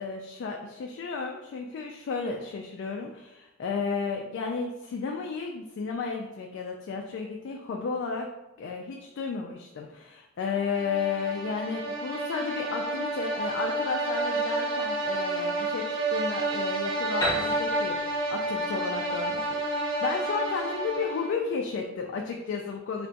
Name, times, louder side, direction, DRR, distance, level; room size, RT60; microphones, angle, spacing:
voice 1, 0.0-8.3 8.6-23.1, left 5 dB, 60° left, 1 dB, 0.3 m, -33 dB
sound 1, 10.5-21.5, right 2 dB, 70° right, 0.5 m, -30 dB
Piano, 17.2-20.9, left 1 dB, 20° left, 0.7 m, -35 dB
2.5 x 2.3 x 3.8 m, 1.0 s
head